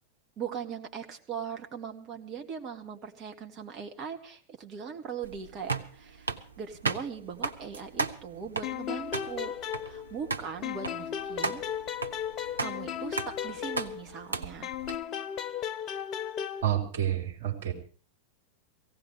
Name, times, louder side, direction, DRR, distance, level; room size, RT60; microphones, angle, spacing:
voice 1, 0.4-9.5 9.8-11.6 12.6-14.7, right 7 dB, 30° right, 3 dB, 2.1 m, -40 dB
sound 1, 5.2-14.9, right 4 dB, 75° right, 1.0 m, -36 dB
sound 2, 8.6-10.3 10.6-14.2 14.6-16.6, left 9 dB, 35° left, 0.7 m, -35 dB
voice 2, 16.6-17.7, right 11 dB, 55° right, 1 dB, 3.7 m, -29 dB
17.5 x 16.5 x 4.8 m, 0.40 s
figure-of-eight pair, 90°, 0 cm